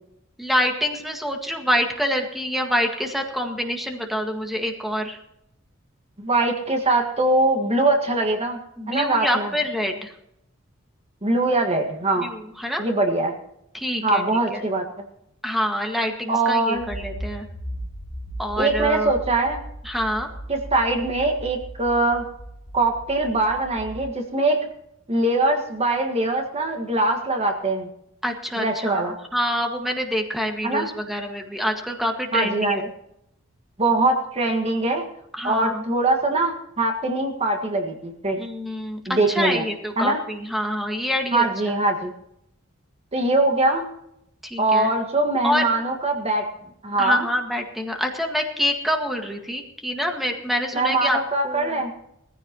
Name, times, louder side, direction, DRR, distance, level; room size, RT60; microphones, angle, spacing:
voice 1, 0.4-5.2 8.8-10.1 12.2-12.9 13.7-14.2 14.5-14.6 15.4-17.5 18.4-19.1 19.8-20.3 28.2-32.9 35.3-35.8 38.4-41.8 44.4-44.9 45.4-45.7 47.0-51.2 51.4-51.8, equal, ahead, 2 dB, 1.8 m, -26 dB
voice 2, 6.2-8.6 8.9-9.5 11.2-12.3 12.8-13.4 14.0-14.8 16.3-16.9 18.6-19.6 20.5-22.3 22.7-24.7 25.1-27.9 28.6-29.1 30.6-30.9 32.3-32.8 33.8-35.1 35.4-38.4 39.1-39.6 40.0-40.2 41.3-42.1 43.1-43.9 44.6-46.5 46.8-47.3 50.7-51.9, right 2 dB, 30° right, 4 dB, 1.7 m, -22 dB
Accelerating revving vroom, 16.7-24.0, right 1 dB, 55° left, 2.9 m, -37 dB
20.0 x 15.0 x 3.0 m, 0.78 s
head